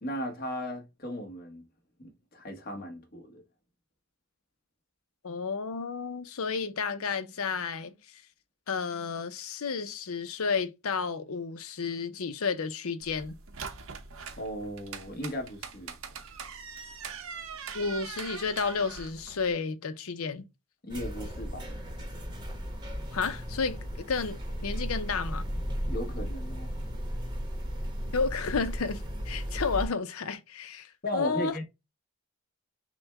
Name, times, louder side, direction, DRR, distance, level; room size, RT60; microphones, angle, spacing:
voice 1, 0.0-1.6 2.0-3.4 14.4-15.9 20.8-21.7 25.9-26.7 31.0-31.6, equal, 40° left, 1.1 m, -36 dB
voice 2, 5.2-8.2 8.7-13.4 17.7-20.4 23.1-25.5 28.1-31.5, left 5 dB, 75° left, 0.6 m, -32 dB
sound 1, 13.0-19.5, right 6 dB, 65° right, 0.7 m, -42 dB
sound 2, 20.9-29.9, equal, 20° right, 0.8 m, -35 dB
6.1 x 2.2 x 3.4 m
head